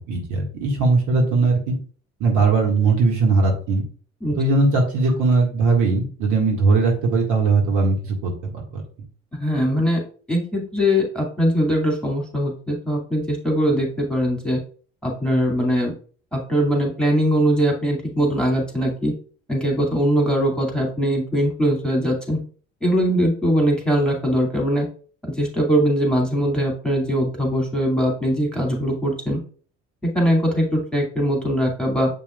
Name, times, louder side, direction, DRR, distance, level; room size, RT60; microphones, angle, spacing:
voice 1, 0.0-1.8 2.2-3.8 4.4-8.8, right 3 dB, 55° right, 0 dB, 1.9 m, -19 dB
voice 2, 4.2-4.5 9.3-10.0 10.3-14.6 15.0-15.9 16.3-19.1 19.5-22.4 22.8-24.9 25.4-29.4 30.1-32.1, equal, ahead, 0 dB, 2.4 m, -21 dB
7.6 x 5.3 x 2.4 m, 0.43 s
figure-of-eight pair, 55°, 36 cm